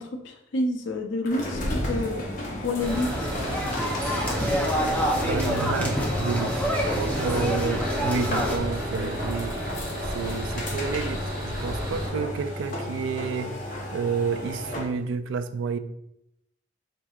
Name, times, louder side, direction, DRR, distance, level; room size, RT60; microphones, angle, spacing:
voice 1, 0.0-2.3 2.6-3.3, left 2 dB, 75° left, 5 dB, 0.6 m, -29 dB
sound 1, 1.2-15.0, left 1 dB, 45° left, 0.8 m, -34 dB
sound 2, 2.8-8.6, equal, 10° left, 0.6 m, -28 dB
sound 3, 2.8-12.1, equal, 50° right, 1.4 m, -33 dB
voice 2, 5.2-9.6 10.0-13.5 13.9-15.8, right 5 dB, 80° right, 12 dB, 0.3 m, -30 dB
4.6 x 3.8 x 2.4 m, 0.81 s
head